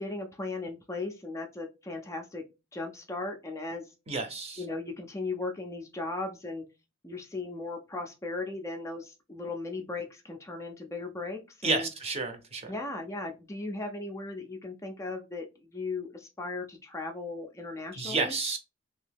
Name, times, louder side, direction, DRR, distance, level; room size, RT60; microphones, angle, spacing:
voice 1, 0.0-2.4 2.7-3.9 4.6-6.6 7.0-11.9 12.7-18.4, left 3 dB, 15° left, 0.4 m, -37 dB
voice 2, 4.1-4.6 11.6-12.7 18.0-18.6, right 3 dB, 30° right, 0.6 m, -30 dB
2.9 x 2.7 x 3.3 m
head